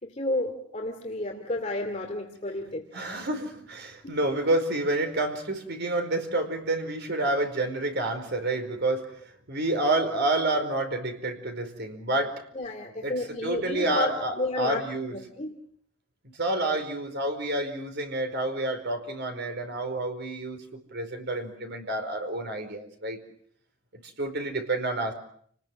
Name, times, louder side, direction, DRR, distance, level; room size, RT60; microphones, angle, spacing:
voice 1, 0.0-2.9 4.0-4.1 12.5-14.1 14.4-14.8 15.1-15.5, left 2 dB, 30° left, 2 dB, 2.6 m, -31 dB
voice 2, 2.9-9.1 9.5-12.4 13.0-15.2 16.4-23.2 24.2-25.1, right 2 dB, 55° right, 6 dB, 4.8 m, -29 dB
29.5 x 20.5 x 7.7 m, 0.63 s
head